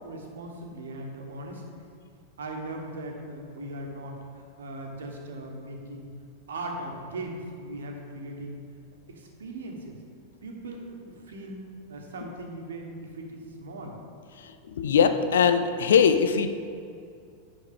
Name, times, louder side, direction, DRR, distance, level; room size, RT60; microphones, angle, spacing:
voice 1, 0.0-1.9 2.4-6.1 6.5-8.6 9.1-10.0 10.4-14.0, right 1 dB, 65° right, 2 dB, 1.2 m, -39 dB
voice 2, 14.4-16.5, left 6 dB, 65° left, 9 dB, 0.4 m, -21 dB
9.5 x 6.3 x 3.6 m, 2.3 s
figure-of-eight pair, 90°, 0 cm